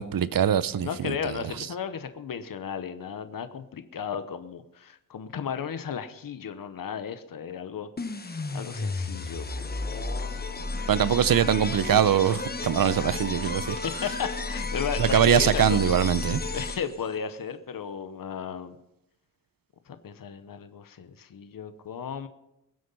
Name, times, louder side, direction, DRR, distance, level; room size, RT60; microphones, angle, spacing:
voice 1, 0.0-1.2 10.9-13.8 15.0-16.4, right 9 dB, 75° right, 16 dB, 0.7 m, -22 dB
voice 2, 0.8-10.4 13.7-15.8 16.5-18.8 19.9-22.3, left 7 dB, 75° left, 10 dB, 1.0 m, -35 dB
sound 1, 8.0-17.1, left 3 dB, 25° left, 1.1 m, -32 dB
22.0 x 7.8 x 5.5 m, 0.85 s
wide cardioid pair, 105°, 34 cm